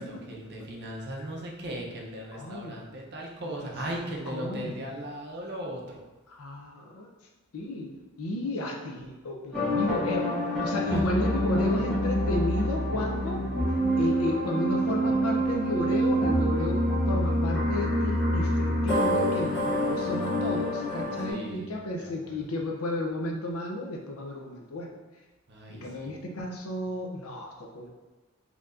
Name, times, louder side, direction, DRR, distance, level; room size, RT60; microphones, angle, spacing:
voice 1, 0.0-6.0 10.9-11.0 11.5-11.8 21.3-21.7 22.0-22.4 25.5-26.2, right 1 dB, 50° right, -2 dB, 0.7 m, -38 dB
voice 2, 2.3-2.9 3.4-4.8 6.3-7.1 7.5-13.4 14.0-16.8 17.1-25.0 25.7-27.9, left 1 dB, 80° left, 1 dB, 0.6 m, -33 dB
sound 1, 9.5-21.3, equal, 5° left, 1.2 m, -26 dB
4.3 x 2.8 x 2.5 m, 1.2 s
head